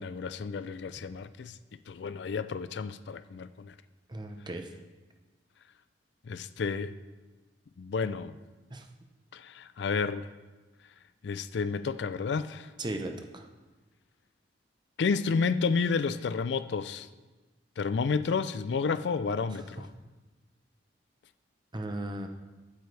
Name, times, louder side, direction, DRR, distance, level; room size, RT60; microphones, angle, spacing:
voice 1, 0.0-1.6 1.9-3.7 6.3-7.0 7.8-8.4 9.3-10.3 11.2-12.7 15.0-17.1 17.8-19.9, left 5 dB, 65° left, 0.4 m, -31 dB
voice 2, 4.1-4.7 8.7-8.9 12.8-13.5 19.6-19.7 21.7-22.3, right 1 dB, 25° right, 0.7 m, -36 dB
15.0 x 8.1 x 3.3 m
head